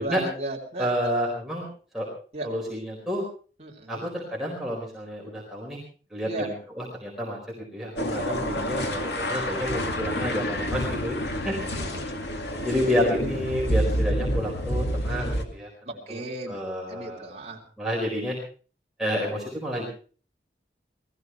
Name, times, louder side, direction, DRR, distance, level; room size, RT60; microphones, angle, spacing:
voice 1, 0.0-1.1 2.3-2.5 3.6-4.1 6.2-6.5 8.1-8.2 11.8-12.2 13.6-13.7 15.8-16.6 16.9-17.6, right 2 dB, 35° right, -1 dB, 3.2 m, -35 dB
voice 2, 0.8-1.7 1.9-2.1 2.4-3.2 3.9-5.8 6.1-11.2 11.4-11.8 12.6-15.7 16.1-17.3 17.8-18.4 19.0-19.9, equal, ahead, -4 dB, 4.4 m, -29 dB
sound 1, 8.0-15.4, equal, 75° left, 2.3 m, -28 dB
19.5 x 15.0 x 4.6 m, 0.40 s
head